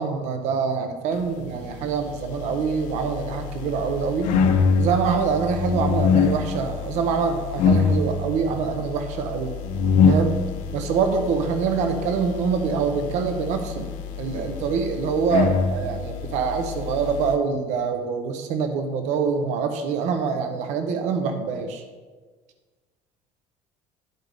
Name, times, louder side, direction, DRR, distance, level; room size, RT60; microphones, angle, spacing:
voice 1, 0.0-4.3 4.8-9.5 10.1-10.4 10.7-13.8 14.2-21.8, right 5 dB, 60° right, 6 dB, 1.0 m, -25 dB
sound 1, 1.9-17.4, left 5 dB, 65° left, 1.0 m, -25 dB
11.0 x 8.0 x 3.6 m, 1.4 s
cardioid pair, 180°, 13 cm